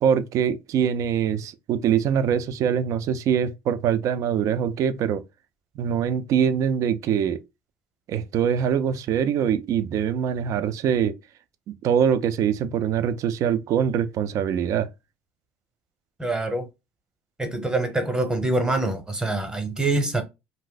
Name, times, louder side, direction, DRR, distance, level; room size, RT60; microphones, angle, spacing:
voice 1, 0.0-5.2 5.8-7.4 8.1-11.2 11.7-14.9, right 8 dB, 55° right, 0.4 m, -23 dB
voice 2, 16.2-16.7 17.4-20.2, right 2 dB, 10° right, 0.8 m, -25 dB
2.6 x 2.0 x 3.8 m
supercardioid pair, 100°, 7 cm